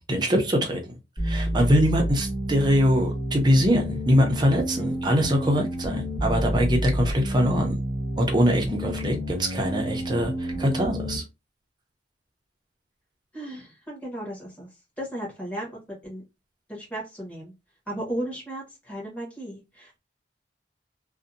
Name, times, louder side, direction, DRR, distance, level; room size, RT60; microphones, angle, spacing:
voice 1, 0.1-0.8 1.2-7.7 8.2-11.2, equal, 25° right, 0.5 m, -23 dB
sound 1, 1.2-11.2, equal, 30° left, 1.3 m, -29 dB
voice 2, 4.7-5.0 13.3-14.7 15.0-16.2 16.7-17.5 17.9-20.0, right 1 dB, 10° left, 1.0 m, -35 dB
2.6 x 2.1 x 2.5 m
head